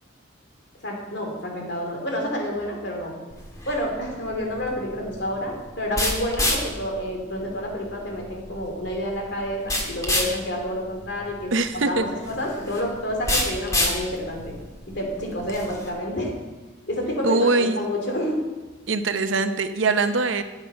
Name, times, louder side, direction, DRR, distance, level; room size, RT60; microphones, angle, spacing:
voice 1, 0.8-3.2 3.7-14.5 14.9-16.3 16.9-18.4, equal, 55° left, 0 dB, 2.8 m, -29 dB
sound 1, 3.3-15.9, left 1 dB, 15° left, 1.6 m, -29 dB
voice 2, 11.5-12.0 17.2-17.8 18.9-20.4, right 3 dB, 70° right, 9 dB, 0.8 m, -22 dB
12.5 x 8.0 x 5.7 m, 1.2 s
head